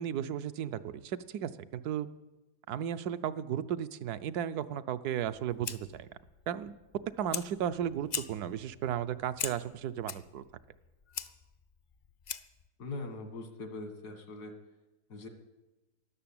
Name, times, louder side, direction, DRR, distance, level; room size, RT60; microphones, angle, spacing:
voice 1, 0.0-2.1 2.7-6.1 6.5-6.7 7.2-10.4, right 9 dB, 80° right, 12 dB, 1.2 m, -35 dB
Fire, 5.2-12.7, left 6 dB, 65° left, 0.4 m, -43 dB
voice 2, 12.8-14.6 15.1-15.3, left 3 dB, 85° left, 6 dB, 2.3 m, -41 dB
13.0 x 11.5 x 8.7 m, 1.0 s
omnidirectional pair, 1.7 m